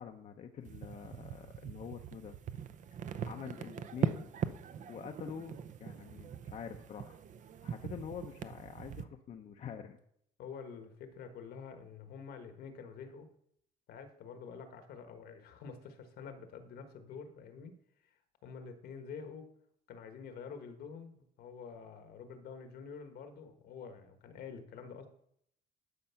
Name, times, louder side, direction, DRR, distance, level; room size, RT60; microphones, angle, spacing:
voice 1, 0.0-2.3 3.2-4.3 4.9-7.2 7.6-10.0, left 7 dB, 50° left, 4 dB, 0.7 m, -46 dB
sound 1, 0.6-9.0, right 8 dB, 45° right, 0.7 m, -41 dB
voice 2, 10.4-13.3 13.9-17.8 18.4-19.5 19.9-25.1, left 6 dB, 70° left, 8 dB, 1.4 m, -48 dB
12.0 x 5.3 x 5.7 m, 0.72 s
cardioid pair, 110°, 17 cm